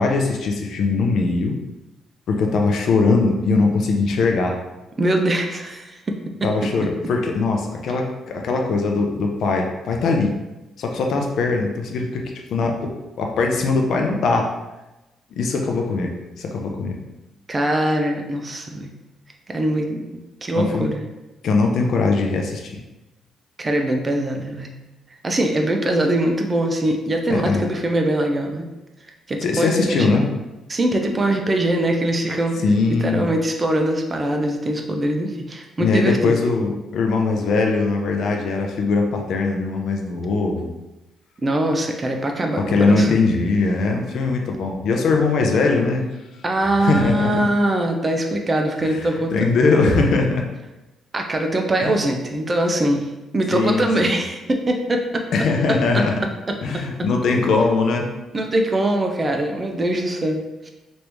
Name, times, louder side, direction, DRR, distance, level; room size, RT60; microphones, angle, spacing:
voice 1, 0.0-1.6 2.3-4.5 6.4-10.4 10.8-12.2 12.5-12.9 13.2-14.5 15.4-16.1 16.3-16.9 20.5-20.9 21.4-22.8 27.3-27.6 29.4-30.2 32.6-33.3 35.8-40.7 42.6-46.0 46.8-47.5 48.8-49.0 49.3-50.4 51.8-52.0 53.5-54.2 55.3-56.1 56.6-58.1, left 3 dB, 70° left, 2 dB, 0.5 m, -20 dB
voice 2, 5.0-6.1 17.5-18.9 19.5-20.1 20.4-21.1 23.6-24.7 25.2-28.6 29.3-30.2 30.7-32.6 33.0-36.3 41.4-43.2 46.4-49.5 51.1-55.2 56.5-56.9 58.3-60.7, right 1 dB, 30° right, 3 dB, 0.5 m, -22 dB
3.0 x 2.6 x 3.4 m, 1.0 s
cardioid pair, 90°, 0 cm